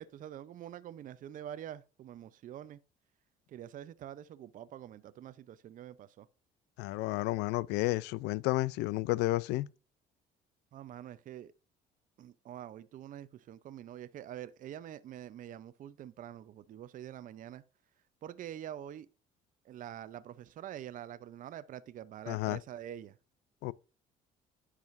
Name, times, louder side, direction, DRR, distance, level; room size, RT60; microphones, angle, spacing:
voice 1, 0.0-2.8 3.5-6.3 10.7-11.5 12.2-17.6 18.2-19.1 19.6-23.2, right 11 dB, 50° right, 0.5 m, -46 dB
voice 2, 6.8-9.7 22.3-22.6 23.6-23.7, left 18 dB, 90° left, 0.4 m, -31 dB
10.5 x 4.9 x 2.5 m
cardioid pair, 110°, 17 cm